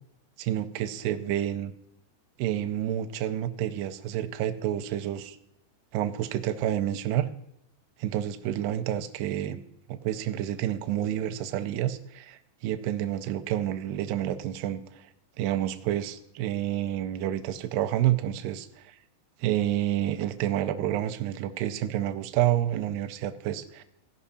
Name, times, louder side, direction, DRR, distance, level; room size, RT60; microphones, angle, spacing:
voice 1, 0.4-1.7 2.4-5.4 5.9-7.3 8.0-9.6 9.9-15.0 15.4-19.0 19.4-23.8, right 12 dB, 80° right, 10 dB, 2.4 m, -29 dB
16.5 x 5.6 x 4.2 m, 0.80 s
omnidirectional pair, 5.2 m